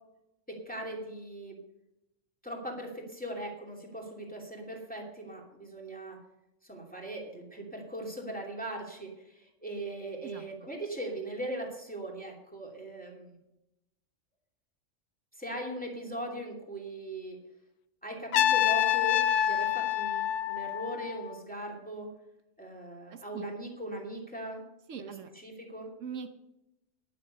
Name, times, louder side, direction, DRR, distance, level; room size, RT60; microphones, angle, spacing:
voice 1, 0.5-1.6 2.4-6.2 6.6-13.3 15.4-17.4 18.0-22.1 22.6-24.6 25.0-25.9, right 1 dB, 5° left, -1 dB, 2.7 m, -39 dB
Trumpet, 18.3-21.3, left 11 dB, 75° left, 1.0 m, -27 dB
voice 2, 23.1-23.5 24.9-25.3 26.0-26.3, right 7 dB, 85° right, 8 dB, 1.2 m, -41 dB
11.5 x 10.5 x 5.4 m, 0.89 s
omnidirectional pair, 1.3 m